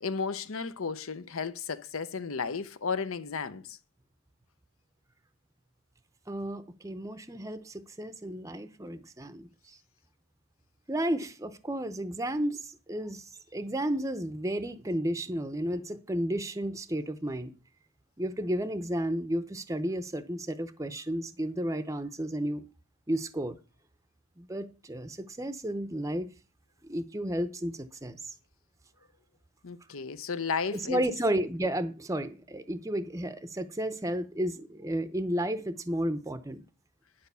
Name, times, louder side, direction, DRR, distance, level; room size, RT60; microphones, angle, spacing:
voice 1, 0.0-3.8 29.6-31.0, left 5 dB, 70° left, 0.8 m, -33 dB
voice 2, 6.3-9.8 10.9-17.5 18.2-22.6 23.1-23.6 24.4-26.3 26.9-28.3 30.7-36.6, right 1 dB, 15° right, 0.6 m, -32 dB
10.5 x 5.0 x 6.8 m
head